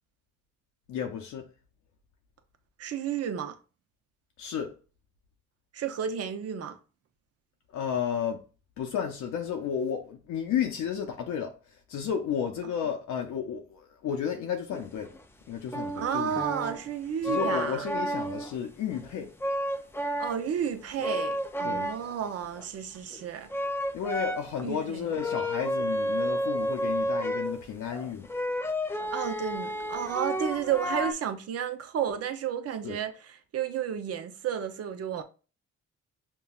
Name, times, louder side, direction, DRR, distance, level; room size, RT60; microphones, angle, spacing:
voice 1, 0.9-1.5 4.4-4.8 7.7-8.4 8.8-15.1 15.5-16.5 17.2-19.3 21.6-21.9 23.9-28.3 32.8-33.0, left 8 dB, 75° left, 0.6 m, -32 dB
voice 2, 2.8-3.6 5.7-6.8 16.0-17.8 20.2-23.5 24.6-25.1 29.1-33.1 33.5-35.2, right 8 dB, 55° right, 0.6 m, -32 dB
sound 1, 14.7-15.2 15.7-16.9 17.2-18.6 18.9-19.1 19.4-20.6 21.0-22.3 22.6-22.7 23.1-23.2 23.5-24.7 25.1-31.1, equal, 10° left, 0.4 m, -31 dB
5.4 x 2.2 x 2.4 m
cardioid pair, 90°, 30 cm